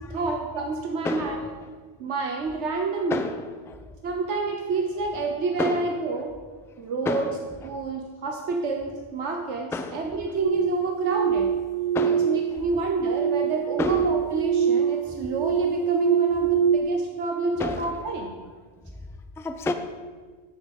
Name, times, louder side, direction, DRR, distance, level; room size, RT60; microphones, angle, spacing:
voice 1, 0.1-1.5 2.0-3.2 4.0-6.3 6.8-7.3 7.6-11.5 12.0-18.4, right 3 dB, 90° right, 2 dB, 1.3 m, -28 dB
voice 2, 1.0-1.4 3.1-3.8 5.6-5.9 7.1-7.3 9.7-10.0 11.9-12.4 13.8-14.1 17.6-17.9 19.4-19.7, left 2 dB, 5° left, 8 dB, 0.3 m, -30 dB
sound 1, 10.4-16.8, right 8 dB, 40° right, 0.6 m, -24 dB
10.5 x 8.1 x 5.3 m, 1.4 s
omnidirectional pair, 1.2 m